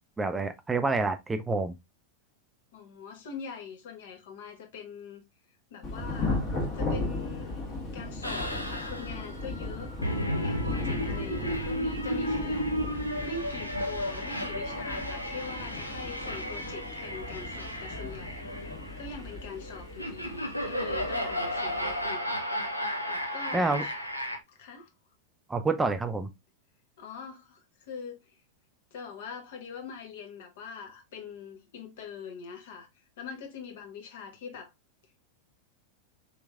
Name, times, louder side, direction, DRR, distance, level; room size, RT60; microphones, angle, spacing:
voice 1, 0.2-1.7 23.5-23.8 25.5-26.3, right 3 dB, 10° right, 0.3 m, -28 dB
voice 2, 2.7-5.2 5.7-6.4 6.7-7.6 7.9-12.7 13.2-18.6 19.0-22.4 23.1-23.9 24.5-24.9 27.0-28.3 28.9-34.7, left 5 dB, 55° left, 0.9 m, -43 dB
Thunder / Rain, 5.8-22.1, left 2 dB, 30° left, 1.2 m, -37 dB
sound 1, 8.2-24.4, equal, 90° left, 0.6 m, -33 dB
3.4 x 3.0 x 2.3 m
figure-of-eight pair, 90°, 0 cm